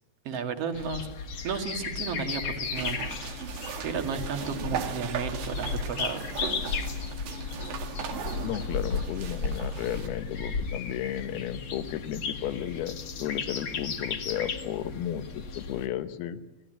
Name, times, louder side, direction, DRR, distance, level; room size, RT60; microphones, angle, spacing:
voice 1, 0.2-1.1 1.4-3.0 3.8-6.3, right 6 dB, 45° right, 5 dB, 2.5 m, -33 dB
sound 1, 0.7-15.9, left 4 dB, 45° left, 2.4 m, -35 dB
sound 2, 2.8-10.1, right 7 dB, 80° right, 4.2 m, -38 dB
voice 2, 8.4-16.4, left 11 dB, 75° left, 11 dB, 2.8 m, -34 dB
28.0 x 17.5 x 9.0 m, 1.0 s
omnidirectional pair, 4.9 m